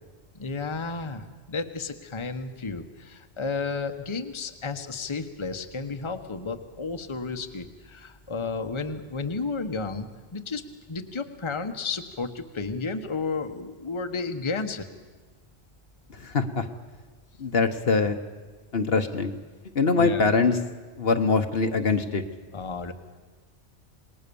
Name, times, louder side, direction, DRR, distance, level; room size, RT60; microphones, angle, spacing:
voice 1, 0.3-14.8 19.9-20.2 22.5-22.9, left 4 dB, 25° left, 7 dB, 1.1 m, -32 dB
voice 2, 16.2-16.6 17.4-18.2 18.7-19.3 19.7-20.6 21.0-22.2, left 4 dB, 55° left, 7 dB, 1.3 m, -23 dB
27.0 x 20.0 x 7.0 m, 1.3 s
omnidirectional pair, 1.2 m